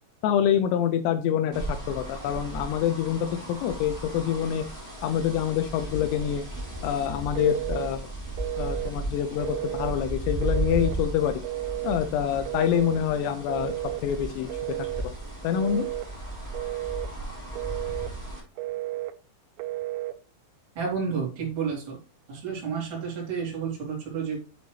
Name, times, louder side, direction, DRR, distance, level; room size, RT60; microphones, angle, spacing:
voice 1, 0.2-4.6 5.0-6.5 6.8-8.0 8.6-11.4 11.8-13.7 14.0-14.5 15.0-15.1 15.4-15.9, left 9 dB, 85° left, 8 dB, 2.4 m, -26 dB
sound 1, 1.5-18.4, right 1 dB, 10° right, 0.9 m, -35 dB
Telephone, 7.4-7.9 8.4-9.0 9.4-10.0 10.4-11.0 11.4-12.0 12.5-13.0 13.5-14.1 14.5-15.1 15.5-16.1 16.5-17.1 17.5-18.1 18.6-19.2 19.6-20.2, right 16 dB, 90° right, 3.1 m, -32 dB
voice 2, 20.7-22.0 22.3-24.4, right 6 dB, 30° right, -4 dB, 2.9 m, -30 dB
8.5 x 4.0 x 3.1 m, 0.34 s
omnidirectional pair, 5.5 m